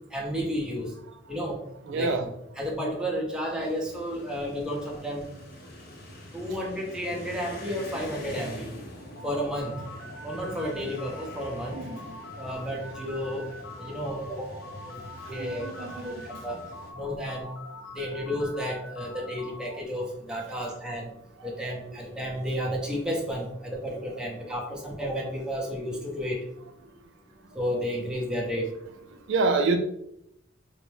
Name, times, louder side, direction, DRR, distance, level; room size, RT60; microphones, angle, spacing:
voice 1, 0.1-0.9 1.3-1.6 1.9-2.1 2.6-5.3 6.3-8.7 9.2-9.7 10.2-11.8 12.4-13.4 13.8-15.0 15.3-16.6 16.9-17.5 18.0-21.1 21.4-26.4 27.5-28.6, equal, 5° right, -2 dB, 0.7 m, -32 dB
voice 2, 1.8-2.3 9.1-9.3 10.7-11.0 11.7-12.1 15.2-16.6 21.4-21.6 21.8-22.0 24.2-24.3 27.5-27.6 28.2-28.5 29.1-29.8, right 3 dB, 65° right, 6 dB, 0.3 m, -30 dB
sound 1, 3.6-16.9, left 1 dB, 55° left, 0.7 m, -45 dB
sound 2, 9.1-19.8, left 2 dB, 80° left, 0.9 m, -44 dB
3.5 x 2.0 x 3.3 m, 0.77 s
head